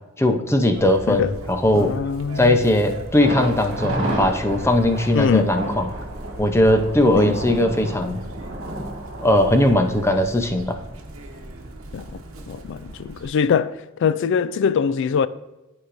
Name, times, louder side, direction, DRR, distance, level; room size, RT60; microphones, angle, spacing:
voice 1, 0.2-1.9 2.4-5.9 6.4-8.2 9.2-10.8, left 1 dB, 15° left, 0.6 m, -19 dB
Chirp tweet, 0.7-13.3, right 1 dB, 85° right, 1.0 m, -38 dB
voice 2, 1.7-2.6 5.1-5.5 7.2-7.3 11.9-12.0 12.5-15.3, left 6 dB, 60° left, 0.3 m, -22 dB
Thunder, 3.2-11.0 11.3-11.4 11.8-11.9, right 1 dB, 60° right, 1.9 m, -31 dB
11.5 x 4.8 x 2.6 m
head